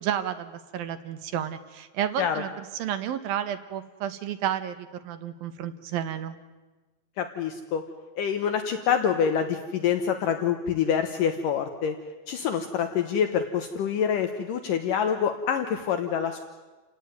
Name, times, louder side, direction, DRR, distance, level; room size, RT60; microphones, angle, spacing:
voice 1, 0.0-6.4, right 10 dB, 80° right, 10 dB, 3.0 m, -31 dB
voice 2, 7.2-7.8 8.2-12.0 12.3-16.5, left 7 dB, 70° left, 7 dB, 2.7 m, -26 dB
29.5 x 17.5 x 9.4 m, 1.2 s
omnidirectional pair, 4.2 m